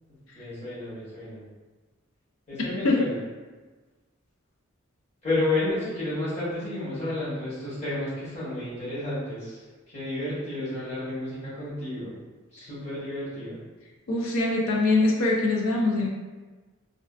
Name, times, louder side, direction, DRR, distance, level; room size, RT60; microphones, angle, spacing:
voice 1, 0.3-1.4 2.5-3.2 5.2-9.6 9.9-12.1 12.5-13.6, left 2 dB, 30° left, -11 dB, 1.0 m, -31 dB
voice 2, 14.1-16.1, left 2 dB, 75° left, -1 dB, 0.4 m, -23 dB
2.4 x 2.4 x 2.3 m, 1.3 s
head